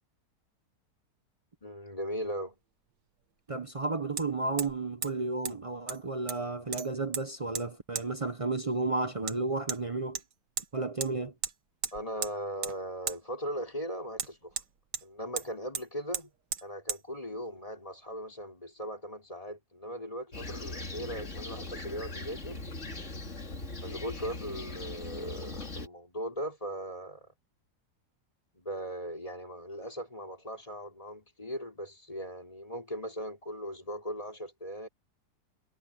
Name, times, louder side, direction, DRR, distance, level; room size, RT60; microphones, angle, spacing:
voice 1, 1.6-2.6 11.9-14.5 15.0-16.3 16.6-22.7 23.8-27.3 28.6-34.9, equal, 20° left, 3.8 m, -39 dB
Hammer, 2.2-2.3 4.2-4.3 4.6-4.8 5.0-5.1 5.5-5.6 5.9-6.4 6.7-7.2 7.6-7.7 8.0-8.1 9.3-9.4 9.7-9.8 10.2-10.7 11.0-11.1 11.4-11.5 11.8-12.3 12.6-12.8 13.1-13.2 14.2-15.1 15.4-15.5 15.7-15.9 16.1-16.3 16.5-16.6 16.9-17.0, right 7 dB, 80° right, 1.9 m, -35 dB
voice 2, 3.5-10.2 10.7-11.3, right 3 dB, 35° right, 0.5 m, -32 dB
Fixed-wing aircraft airplane, 20.3-25.9, left 2 dB, 45° left, 3.0 m, -40 dB
omnidirectional pair, 1.7 m